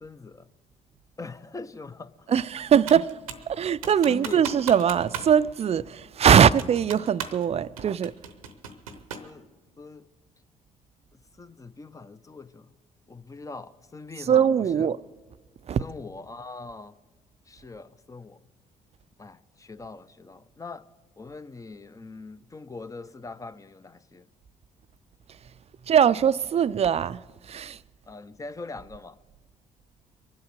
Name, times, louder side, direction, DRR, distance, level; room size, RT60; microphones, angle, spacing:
voice 1, 0.0-0.5 1.2-2.4 2.7-2.9 4.0-4.5 9.2-9.5 9.8-10.1 11.4-12.7 13.1-14.9 15.8-17.0 17.5-18.4 19.2-20.9 21.2-24.3 28.1-29.2, left 3 dB, 20° left, 0.7 m, -42 dB
voice 2, 2.3-3.2 3.5-8.1 14.3-15.0 15.7-15.8 25.9-27.8, right 8 dB, 35° right, 0.5 m, -21 dB
Computer keyboard, 2.9-3.5 3.8-5.3 5.6-5.7 6.3-7.5 7.8-9.3, right 8 dB, 85° right, 0.8 m, -37 dB
23.0 x 7.9 x 6.7 m
hypercardioid pair, 50°, 18 cm